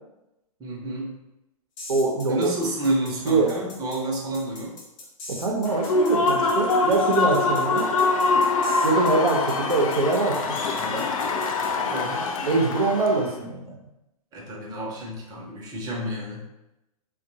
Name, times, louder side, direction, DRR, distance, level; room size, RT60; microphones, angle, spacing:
voice 1, 0.6-1.2 2.3-4.8 11.9-12.3 14.3-16.5, right 1 dB, 20° right, -3 dB, 0.6 m, -30 dB
sound 1, 1.8-11.7, left 2 dB, 40° left, 0.9 m, -41 dB
voice 2, 1.9-2.5 3.2-3.7 5.3-7.9 8.8-11.0 11.9-12.0 12.4-13.8, right 3 dB, 90° right, 0 dB, 0.6 m, -24 dB
Human voice / Cheering / Applause, 5.6-13.3, left 3 dB, 65° left, 0.4 m, -24 dB
2.6 x 2.2 x 2.6 m, 0.92 s
hypercardioid pair, 115°, 19 cm